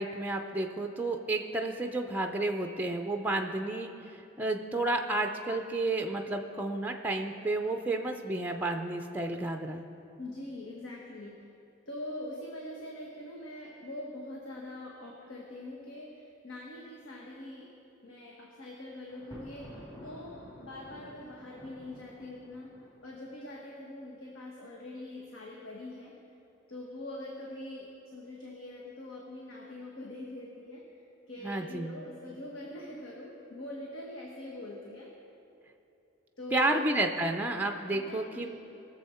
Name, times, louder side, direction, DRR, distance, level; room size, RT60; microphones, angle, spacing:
voice 1, 0.0-9.8 31.4-31.9 36.5-38.5, right 2 dB, 10° right, 4 dB, 0.5 m, -31 dB
voice 2, 10.2-11.4 11.9-17.7 18.0-22.7 23.0-26.1 26.7-35.1 36.4-36.8 37.9-38.5, left 1 dB, 70° left, -2 dB, 1.3 m, -43 dB
Thunder, 19.1-23.2, equal, 20° left, 2.5 m, -51 dB
19.5 x 7.1 x 4.3 m, 2.9 s
head